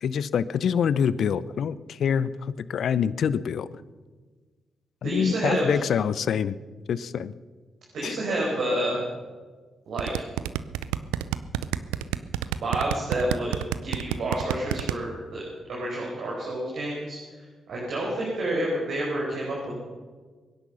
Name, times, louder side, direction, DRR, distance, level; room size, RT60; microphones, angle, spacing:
voice 1, 0.0-3.7 5.0-6.6 6.9-7.3 8.0-8.2, left 7 dB, 65° left, 17 dB, 0.7 m, -26 dB
voice 2, 5.0-5.8 7.9-9.0 9.9-10.3 12.5-13.5 13.8-15.4 15.7-17.2 17.7-19.7, right 1 dB, 70° right, -4 dB, 4.9 m, -29 dB
sound 1, 10.0-14.9, right 13 dB, 85° right, 0.5 m, -27 dB
23.5 x 10.5 x 5.7 m, 1.4 s
hypercardioid pair, 45°, 0 cm